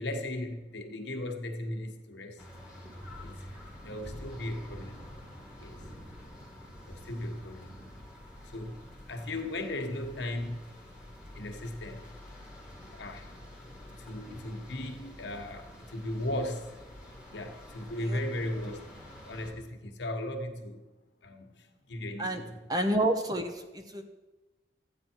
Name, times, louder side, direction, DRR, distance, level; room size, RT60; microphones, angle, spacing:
voice 1, 0.0-2.5 3.2-3.5 3.8-5.1 5.6-5.9 6.9-7.8 8.4-10.7 11.3-12.2 12.9-13.3 13.9-16.8 17.3-18.9 19.2-20.9 21.2-22.7, left 1 dB, 80° left, 5 dB, 1.2 m, -37 dB
sound 1, 2.4-19.5, left 1 dB, 5° right, 1.8 m, -48 dB
voice 2, 22.7-24.0, right 1 dB, 20° right, 5 dB, 0.8 m, -29 dB
13.0 x 9.2 x 4.5 m, 1.1 s
head